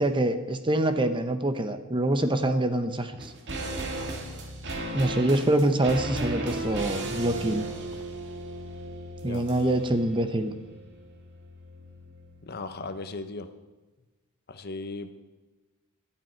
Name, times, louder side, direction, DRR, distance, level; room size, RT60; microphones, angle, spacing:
voice 1, 0.0-3.3 4.9-7.7 9.2-10.6, right 1 dB, 20° right, 9 dB, 0.9 m, -25 dB
sound 1, 3.2-12.6 12.8-12.9, right 1 dB, 55° right, 2.0 m, -36 dB
voice 2, 12.4-13.5 14.5-15.1, left 3 dB, 45° left, 9 dB, 0.9 m, -37 dB
17.5 x 12.0 x 4.5 m, 1.2 s
head